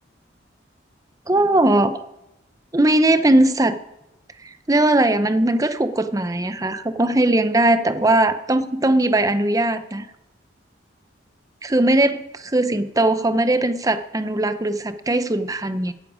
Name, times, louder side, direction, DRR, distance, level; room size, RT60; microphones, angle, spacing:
voice 1, 1.3-2.0 2.7-3.8 4.7-10.1 11.6-15.9, right 1 dB, 15° right, 11 dB, 0.6 m, -19 dB
16.0 x 12.0 x 5.0 m, 0.90 s
head